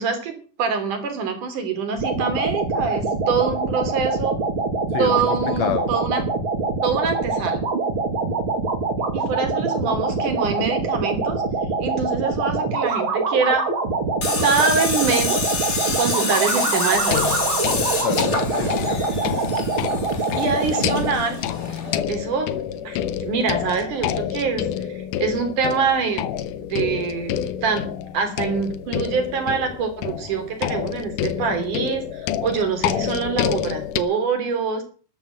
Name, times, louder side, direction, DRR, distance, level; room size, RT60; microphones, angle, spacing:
voice 1, 0.0-4.4 5.0-6.2 6.8-7.6 9.1-11.4 11.8-13.6 14.4-15.6 16.0-17.2 20.4-21.4 21.8-22.6 22.8-26.3 26.7-27.8 28.1-34.8, right 5 dB, 75° right, 4.8 m, -25 dB
sound 1, 2.0-21.1, right 3 dB, 40° right, 3.2 m, -24 dB
voice 2, 4.9-5.9 18.0-19.2, left 10 dB, 65° left, 2.0 m, -29 dB
Tools, 14.2-22.0, left 3 dB, 25° left, 2.5 m, -27 dB
sound 2, 16.9-34.0, left 10 dB, 90° left, 2.6 m, -28 dB
13.5 x 11.5 x 7.6 m
omnidirectional pair, 3.6 m